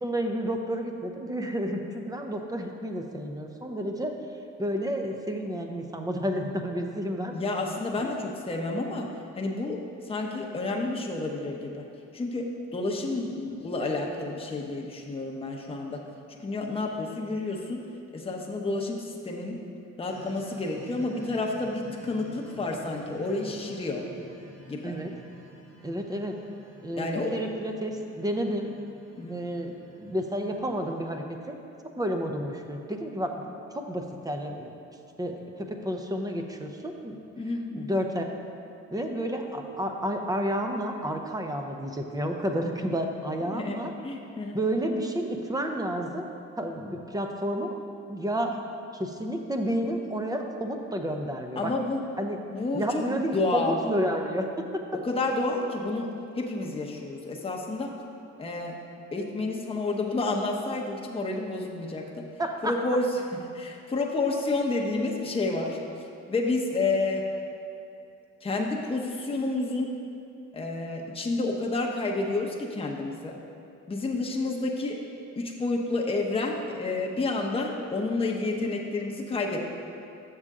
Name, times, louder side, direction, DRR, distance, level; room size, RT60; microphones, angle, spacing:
voice 1, 0.0-4.1 4.6-7.4 8.0-8.1 24.8-25.1 25.8-26.4 26.8-28.7 29.3-31.6 31.9-34.8 35.2-37.2 37.8-38.2 38.9-43.9 44.5-46.3 46.6-47.8 48.1-48.6 48.9-51.7 52.2-52.4 52.7-54.7 62.4-62.8, equal, 10° right, 4 dB, 0.6 m, -31 dB
voice 2, 7.3-9.8 10.1-11.8 12.1-16.0 16.4-17.8 18.1-19.6 20.0-24.0 24.7-25.0 27.0-27.4 29.2-29.4 37.4-37.9 43.5-43.8 44.0-44.6 51.6-52.0 52.5-53.8 55.0-56.1 56.4-57.9 58.4-58.8 59.1-62.2 62.6-63.0 63.3-65.8 66.3-67.2 68.4-69.9 70.5-73.3 73.9-75.0 75.4-79.6, left 2 dB, 20° left, -1 dB, 0.8 m, -30 dB
sound 1, 20.1-31.1, right 2 dB, 90° right, 1.3 m, -50 dB
7.2 x 6.6 x 3.7 m, 2.6 s
cardioid pair, 90°, 30 cm